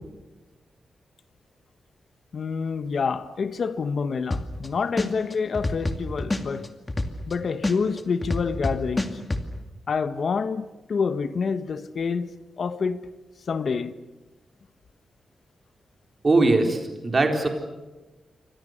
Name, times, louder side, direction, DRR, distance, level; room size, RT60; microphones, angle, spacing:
voice 1, 2.3-6.7 7.3-9.2 9.9-13.1 13.5-14.0, left 5 dB, 55° left, 1.4 m, -27 dB
sound 1, 4.3-4.7 5.0-7.3 7.6-9.4, left 2 dB, 20° left, 2.3 m, -26 dB
voice 2, 16.2-17.5, right 2 dB, 30° right, 4.3 m, -20 dB
29.0 x 25.0 x 6.7 m
wide cardioid pair, 150°, 0 cm